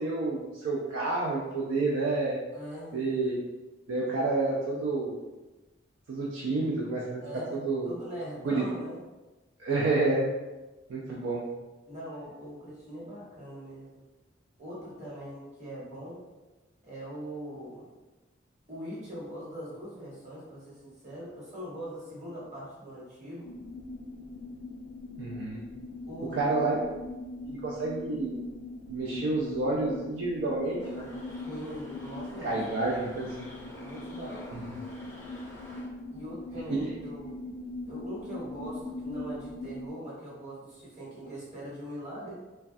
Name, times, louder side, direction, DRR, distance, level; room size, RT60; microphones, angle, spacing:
voice 1, 0.0-2.4 2.9-3.4 3.9-5.2 6.1-7.2 7.6-7.9 8.4-8.6 9.6-10.3 10.9-11.5 25.2-25.6 26.3-26.7 27.4-28.4 28.9-31.1 32.4-33.5 36.7-36.9, right 3 dB, 85° right, -4 dB, 0.4 m, -29 dB
voice 2, 2.5-3.0 7.2-9.0 9.7-9.8 11.9-14.0 14.6-16.2 16.8-17.9 18.7-23.5 26.1-26.6 31.4-33.3 33.8-34.6 36.1-37.4 37.8-42.3, equal, 40° right, -7 dB, 1.1 m, -41 dB
sound 1, 23.4-39.9, left 2 dB, 80° left, 0.3 m, -41 dB
sound 2, 30.8-35.9, left 1 dB, 10° left, 0.5 m, -48 dB
3.2 x 2.2 x 2.5 m, 1.1 s
head